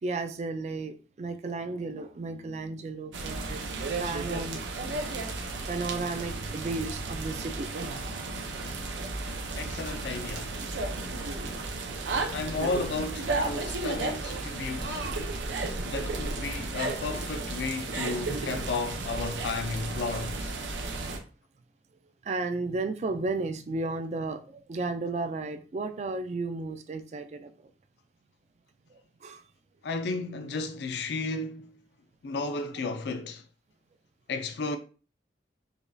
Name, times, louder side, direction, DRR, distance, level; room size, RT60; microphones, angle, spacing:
voice 1, 0.0-3.6 4.0-4.6 5.0-5.2 5.7-7.7 8.4-8.5 14.4-14.7 15.3-15.7 22.2-27.5 28.9-29.4, right 3 dB, 40° right, 0.3 m, -34 dB
sound 1, 3.1-21.2, right 3 dB, 85° right, 0.5 m, -33 dB
voice 2, 9.6-10.5 12.3-15.0 15.8-20.5 29.8-31.7 32.2-33.4 34.3-34.8, left 3 dB, 75° left, 0.4 m, -33 dB
5.0 x 2.3 x 2.6 m
head